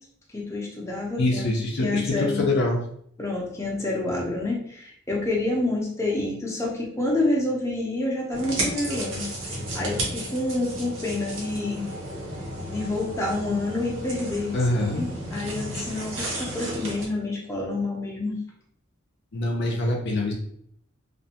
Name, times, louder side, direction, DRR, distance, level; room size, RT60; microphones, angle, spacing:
voice 1, 0.3-1.5 1.8-2.5 3.2-11.9 12.7-18.4, left 2 dB, 15° left, -4 dB, 0.6 m, -28 dB
voice 2, 1.2-2.8 14.5-15.0 19.3-20.3, left 2 dB, 60° left, 0 dB, 0.5 m, -24 dB
sound 1, 8.3-17.1, right 1 dB, 65° right, 0.8 m, -33 dB
2.5 x 2.2 x 2.7 m, 0.66 s
head